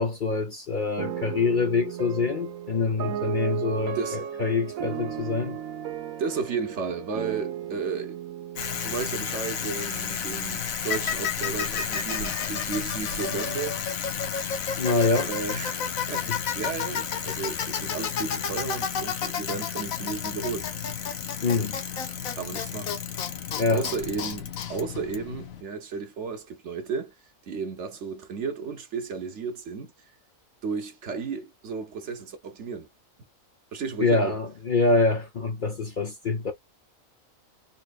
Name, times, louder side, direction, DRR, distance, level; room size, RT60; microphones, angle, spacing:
voice 1, 0.0-5.6 14.8-15.3 16.3-16.4 21.4-21.8 23.6-23.8 34.0-36.5, left 3 dB, 45° left, 0.7 m, -25 dB
sound 1, 1.0-10.1, right 10 dB, 85° right, 1.2 m, -35 dB
voice 2, 6.2-8.2 8.8-13.8 15.2-20.7 22.3-23.0 23.7-27.1 27.5-29.9 30.6-32.9 33.7-34.4, right 5 dB, 60° right, 1.2 m, -33 dB
Bicycle, 8.6-25.6, left 7 dB, 80° left, 1.3 m, -31 dB
sound 2, 9.9-13.3, equal, 10° left, 1.0 m, -47 dB
4.1 x 3.0 x 2.3 m
omnidirectional pair, 1.4 m